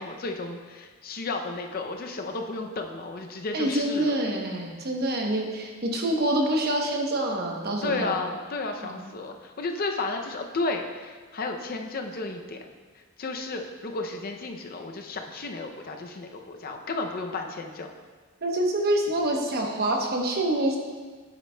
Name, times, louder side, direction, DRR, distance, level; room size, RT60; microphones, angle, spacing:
voice 1, 0.0-4.2 7.8-12.6 13.2-17.9, left 3 dB, 45° left, 4 dB, 0.5 m, -33 dB
voice 2, 3.5-8.2 8.8-9.0 18.4-20.8, right 1 dB, 45° right, 1 dB, 0.9 m, -26 dB
9.3 x 8.0 x 2.2 m, 1.5 s
head